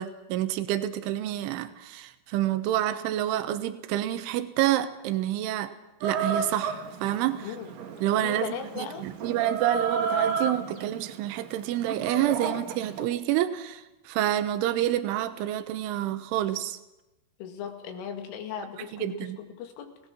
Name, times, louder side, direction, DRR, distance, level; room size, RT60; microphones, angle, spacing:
voice 1, 0.0-5.7 6.0-7.5 8.0-16.8 18.9-19.4, right 12 dB, 85° right, 10 dB, 3.4 m, -28 dB
Chicken rooster, 6.0-13.0, right 5 dB, 60° right, 2.8 m, -33 dB
voice 2, 7.4-7.7 8.2-9.1 17.4-20.0, left 7 dB, 85° left, 5 dB, 4.5 m, -37 dB
28.0 x 18.5 x 6.0 m, 0.96 s
omnidirectional pair, 5.6 m